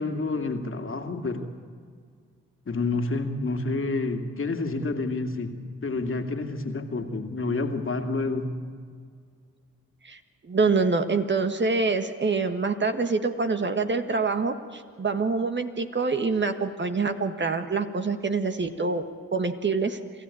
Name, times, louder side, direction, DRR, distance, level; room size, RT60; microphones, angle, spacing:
voice 1, 0.0-1.5 2.7-5.6 5.8-8.6, left 3 dB, 40° left, 4 dB, 2.4 m, -29 dB
voice 2, 10.0-19.0 19.3-20.0, right 4 dB, 35° right, 7 dB, 1.6 m, -26 dB
26.5 x 14.0 x 8.6 m, 2.1 s
hypercardioid pair, 50°, 31 cm